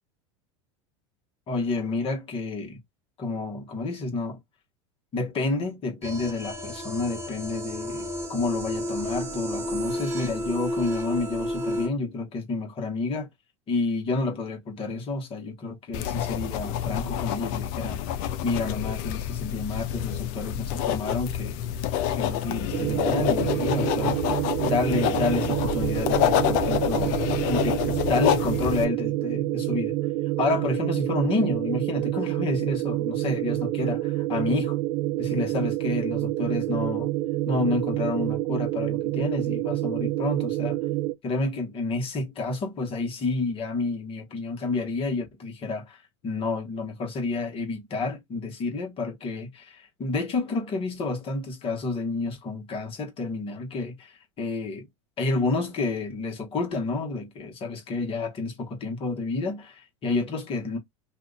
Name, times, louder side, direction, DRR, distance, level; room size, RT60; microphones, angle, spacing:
voice 1, 1.5-2.8 3.2-4.4 5.1-13.3 13.7-18.0 18.4-21.6 22.1-24.2 24.6-27.2 27.5-29.9 30.4-34.8 35.2-37.1 37.5-40.8 41.2-54.9 55.2-60.8, left 3 dB, 35° left, 1.3 m, -30 dB
sound 1, 6.0-11.9, equal, 15° right, 0.9 m, -31 dB
sound 2, 15.9-28.8, left 10 dB, 55° left, 0.5 m, -27 dB
sound 3, 22.7-41.1, right 16 dB, 45° right, 0.6 m, -27 dB
2.7 x 2.4 x 3.8 m
hypercardioid pair, 105°, 16 cm